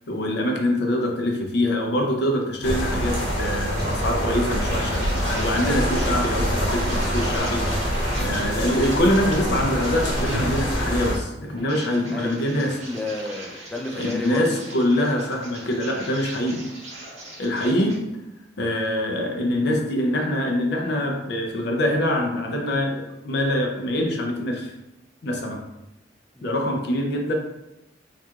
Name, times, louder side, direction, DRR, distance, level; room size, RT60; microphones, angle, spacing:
voice 1, 0.1-12.8 13.9-16.7 17.4-18.1 18.6-24.7 25.2-25.7 26.4-27.3, left 1 dB, 65° left, 2 dB, 0.5 m, -24 dB
sound 1, 2.6-11.2, equal, 80° left, 1.1 m, -25 dB
sound 2, 3.6-10.6 11.4-17.9, right 1 dB, 40° right, 1.1 m, -40 dB
voice 2, 12.1-14.6 26.4-26.7, left 2 dB, 5° left, 0 dB, 0.4 m, -32 dB
4.4 x 2.4 x 2.3 m, 0.91 s
head